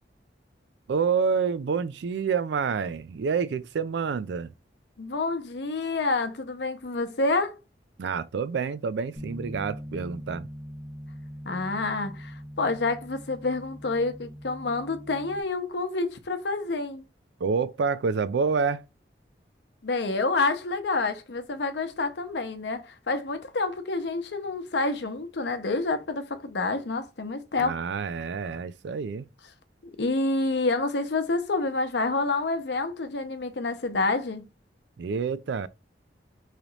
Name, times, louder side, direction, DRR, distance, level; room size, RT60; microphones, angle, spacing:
voice 1, 0.9-4.5 8.0-10.5 17.4-18.8 27.6-29.3 35.0-35.7, right 5 dB, 75° right, 0.4 m, -28 dB
voice 2, 5.0-7.6 11.4-17.0 19.8-27.8 30.0-34.5, left 3 dB, 75° left, 0.7 m, -28 dB
Bass guitar, 9.2-15.4, equal, 45° right, 1.1 m, -42 dB
3.3 x 2.9 x 3.9 m
head